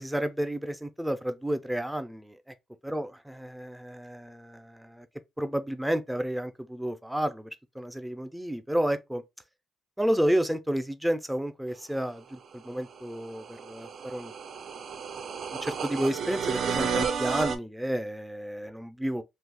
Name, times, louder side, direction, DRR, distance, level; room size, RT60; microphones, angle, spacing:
voice 1, 0.0-2.4 2.8-5.1 5.4-7.5 7.7-9.2 10.0-14.3 15.6-19.2, right 1 dB, 5° right, 0.5 m, -31 dB
sound 1, 12.7-17.6, right 6 dB, 60° right, 0.5 m, -32 dB
2.8 x 2.3 x 3.6 m
cardioid pair, 90°, 0 cm